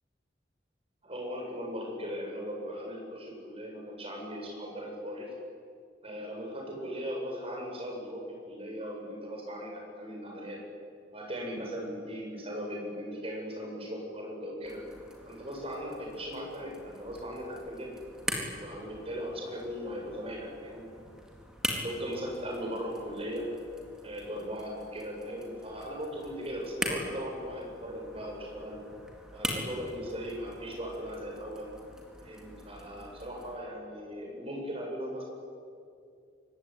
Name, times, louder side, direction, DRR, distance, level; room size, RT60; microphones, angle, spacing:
voice 1, 1.0-5.3 6.0-10.6 11.1-14.8 15.2-18.0 18.6-20.9 21.7-23.5 24.0-28.8 29.3-31.7 32.2-35.3, equal, 30° right, 0 dB, 7.8 m, -38 dB
sound 1, 14.6-33.6, equal, 5° right, 4.1 m, -42 dB
25.5 x 22.0 x 9.8 m, 2.4 s
head